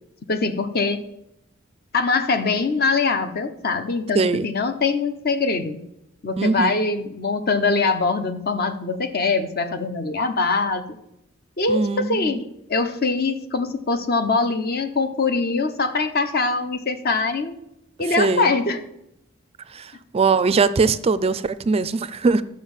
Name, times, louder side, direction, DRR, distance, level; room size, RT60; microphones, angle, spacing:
voice 1, 0.3-1.0 1.9-5.8 6.2-10.8 11.6-12.4 12.7-17.6 18.0-18.8, left 4 dB, 50° left, 0.9 m, -23 dB
voice 2, 4.1-4.5 6.4-6.7 11.7-12.4 18.0-18.5 19.7-22.4, right 4 dB, 30° right, 0.4 m, -21 dB
12.5 x 5.2 x 7.2 m
head